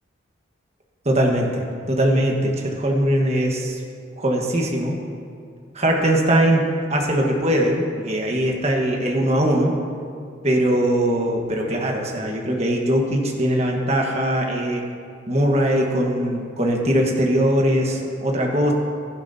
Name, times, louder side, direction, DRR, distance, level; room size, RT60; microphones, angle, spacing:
voice 1, 1.0-3.8 4.2-5.0 5.7-9.8 10.4-14.8 15.3-18.7, right 1 dB, 35° right, 1 dB, 1.3 m, -21 dB
16.0 x 11.0 x 2.7 m, 2.3 s
head